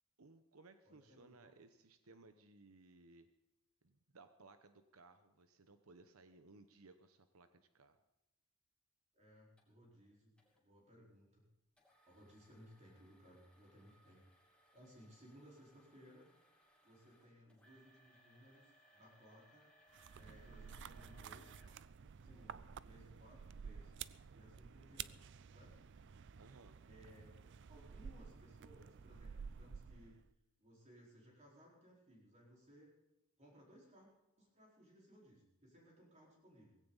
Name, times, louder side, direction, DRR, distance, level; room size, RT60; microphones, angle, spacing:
voice 1, 0.2-3.3 3.8-8.0 26.4-26.8, right 3 dB, 80° right, 9 dB, 0.9 m, -62 dB
voice 2, 0.8-1.5 9.1-11.4 12.1-14.2 14.7-16.3 16.8-19.7 20.1-21.5 22.2-24.1 24.3-25.2 25.5-25.8 26.9-27.4 27.7-30.2 30.6-32.9 33.4-34.1 34.4-36.8, equal, 30° right, -3 dB, 4.3 m, -62 dB
sound 1, 9.6-9.7 10.4-10.6 11.8-22.6 23.2-23.3 23.9-24.0, equal, 5° left, 2.8 m, -70 dB
sound 2, 19.9-30.3, right 7 dB, 55° right, 0.4 m, -52 dB
18.0 x 16.0 x 4.0 m, 0.89 s
head